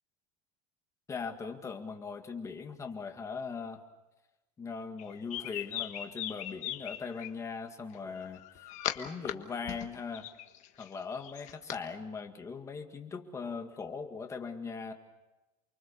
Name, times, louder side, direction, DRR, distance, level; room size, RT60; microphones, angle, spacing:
voice 1, 1.1-3.8 4.6-8.4 9.0-10.3 10.8-14.9, left 5 dB, 15° left, 5 dB, 1.9 m, -40 dB
sound 1, 5.0-7.3 8.2-9.3 9.7-11.8, left 13 dB, 35° left, 1.5 m, -39 dB
29.0 x 23.5 x 7.0 m, 1.1 s
supercardioid pair, 165°, 20 cm